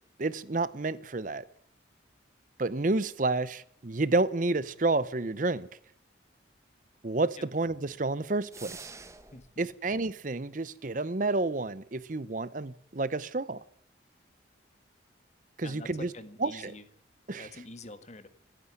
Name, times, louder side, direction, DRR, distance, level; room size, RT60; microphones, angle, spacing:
voice 1, 0.2-1.4 2.6-5.7 7.0-8.9 9.6-13.6 15.6-16.1 16.4-16.7 17.3-17.5, right 3 dB, 45° right, 0.7 m, -30 dB
sound 1, 8.5-9.5, right 4 dB, 15° right, 1.1 m, -46 dB
voice 2, 9.3-9.7 15.6-16.8 17.3-18.3, left 2 dB, 35° left, 1.5 m, -46 dB
27.0 x 9.8 x 9.8 m
head